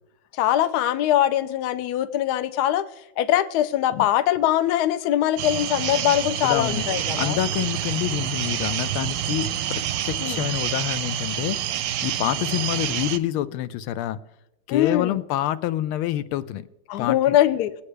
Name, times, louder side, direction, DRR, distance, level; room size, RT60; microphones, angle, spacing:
voice 1, 0.4-2.9 3.2-7.4 10.2-10.4 14.7-15.2 16.9-17.7, left 12 dB, 70° left, 13 dB, 1.0 m, -22 dB
sound 1, 5.4-13.2, right 11 dB, 75° right, 1.0 m, -27 dB
voice 2, 6.4-6.8 7.2-14.2 14.7-16.7 17.0-17.4, left 12 dB, 90° left, 13 dB, 1.5 m, -27 dB
21.5 x 8.6 x 3.3 m, 0.93 s
omnidirectional pair, 2.3 m